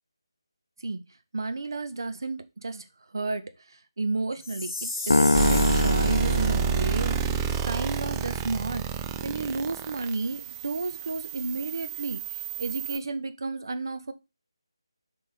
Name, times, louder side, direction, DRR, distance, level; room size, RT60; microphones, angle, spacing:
voice 1, 1.3-7.2 7.6-14.1, right 3 dB, 50° right, 0.8 m, -32 dB
Chime, 4.4-6.4, left 2 dB, 20° left, 1.6 m, -34 dB
sound 1, 5.1-7.5, left 2 dB, 70° left, 0.5 m, -24 dB
sound 2, 5.3-13.0, right 7 dB, 10° right, 0.3 m, -29 dB
6.7 x 3.8 x 4.3 m
figure-of-eight pair, 155°, 3 cm